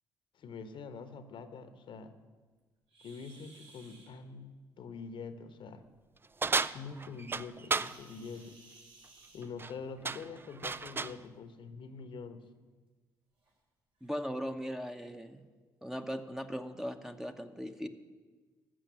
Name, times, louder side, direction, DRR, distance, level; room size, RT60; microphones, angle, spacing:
voice 1, 0.4-2.1 3.0-5.8 6.5-8.6 9.3-12.4, left 5 dB, 55° left, 11 dB, 1.0 m, -45 dB
sound 1, 2.9-4.1 7.6-9.9 11.1-11.3 11.9-12.0 12.5-12.6 13.4-13.5 14.0-14.2, right 3 dB, 60° right, 4.1 m, -58 dB
sound 2, 6.4-8.0 9.4-9.7 10.0-11.2, right 4 dB, 20° right, 0.4 m, -33 dB
voice 2, 14.0-15.4 15.8-17.9, equal, 5° right, 7 dB, 1.0 m, -38 dB
14.0 x 6.5 x 9.1 m, 1.4 s
hypercardioid pair, 50°, 10 cm